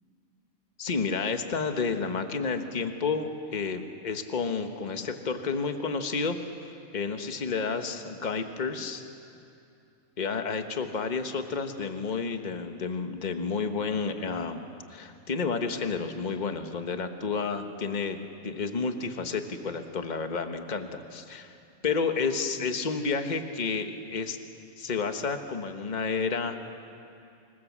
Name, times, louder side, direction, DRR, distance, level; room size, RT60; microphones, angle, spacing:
voice 1, 0.8-6.4 6.9-9.0 10.2-14.6 14.9-21.5 21.8-24.4 24.8-26.6, left 4 dB, 35° left, 7 dB, 1.3 m, -30 dB
26.0 x 21.5 x 7.4 m, 2.6 s
omnidirectional pair, 1.5 m